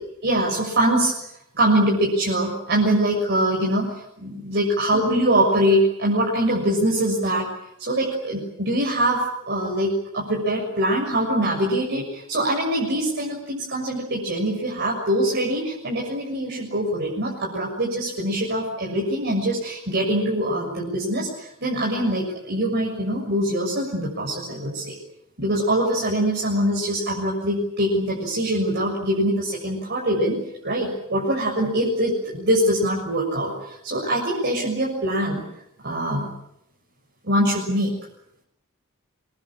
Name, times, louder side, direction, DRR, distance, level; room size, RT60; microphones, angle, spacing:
voice 1, 0.2-1.1 1.5-3.9 4.2-7.5 7.8-24.9 25.4-30.4 30.6-35.4 35.8-36.3 37.2-38.0, right 1 dB, 55° right, -3 dB, 6.8 m, -23 dB
27.0 x 22.5 x 8.8 m, 0.78 s
head